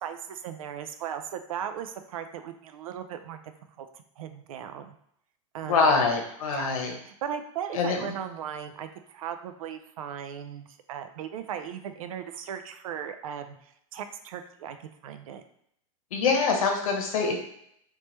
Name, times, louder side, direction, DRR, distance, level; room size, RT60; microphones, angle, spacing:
voice 1, 0.0-3.5 3.8-3.9 4.2-4.9 5.5-6.1 6.5-14.8 15.0-15.4, right 8 dB, 75° right, 9 dB, 0.5 m, -37 dB
voice 2, 5.7-6.9 7.7-8.1 16.1-17.4, left 4 dB, 75° left, 2 dB, 1.0 m, -24 dB
3.2 x 3.1 x 3.2 m, 0.72 s
supercardioid pair, 180°, 18 cm